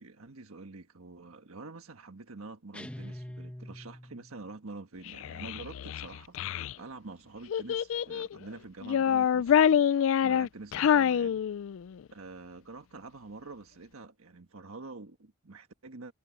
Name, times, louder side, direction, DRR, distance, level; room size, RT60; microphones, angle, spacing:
voice 1, 0.0-9.6 9.9-11.4 12.1-16.1, right 3 dB, 85° right, 1.4 m, -46 dB
sound 1, 2.7-4.5, equal, 5° left, 1.5 m, -44 dB
Child speech kid speaking, 5.1-6.7 7.5-8.4 8.8-12.0, left 8 dB, 65° left, 0.3 m, -26 dB
head